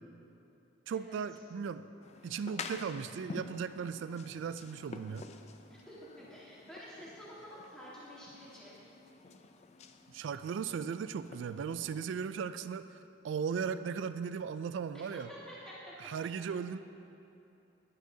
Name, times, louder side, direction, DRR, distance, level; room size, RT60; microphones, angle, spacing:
voice 1, 0.9-1.9 2.2-5.2 10.1-15.3 16.0-16.8, right 6 dB, 65° right, 12 dB, 0.3 m, -37 dB
sound 1, 2.0-12.1, left 4 dB, 35° left, 0.4 m, -49 dB
voice 2, 5.7-8.7 14.9-15.7, equal, 5° left, -9 dB, 1.6 m, -50 dB
11.5 x 9.1 x 2.7 m, 2.9 s
head